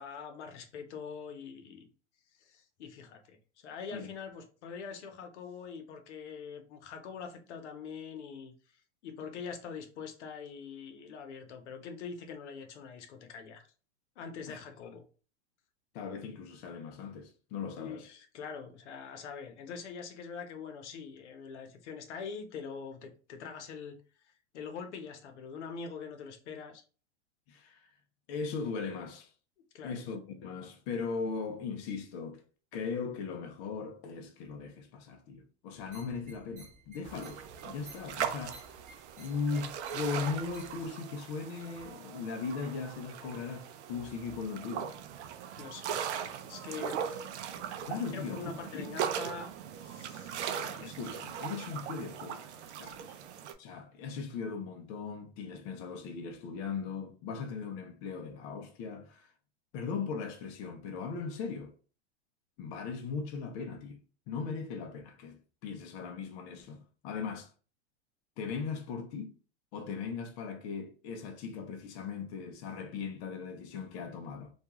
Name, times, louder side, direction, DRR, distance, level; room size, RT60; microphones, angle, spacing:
voice 1, 0.0-1.9 2.4-8.5 9.0-13.7 14.2-15.0 17.7-24.0 24.3-26.8 29.7-29.9 45.6-46.0 46.4-47.3 47.6-47.7 48.1-50.7 52.8-53.0, left 6 dB, 70° left, 0.8 m, -44 dB
voice 2, 15.9-18.0 27.5-27.9 28.3-29.3 29.8-32.4 32.7-38.7 39.2-44.9 47.8-48.9 50.5-53.2 53.6-59.3 59.7-61.7 62.6-64.0 64.3-67.5 68.4-69.4 69.7-74.5, left 5 dB, 35° left, 0.5 m, -38 dB
sound 1, 35.8-40.9, right 3 dB, 20° right, 0.7 m, -56 dB
sound 2, 37.0-53.5, right 8 dB, 70° right, 0.5 m, -39 dB
2.4 x 2.2 x 2.9 m
hypercardioid pair, 125°, 35 cm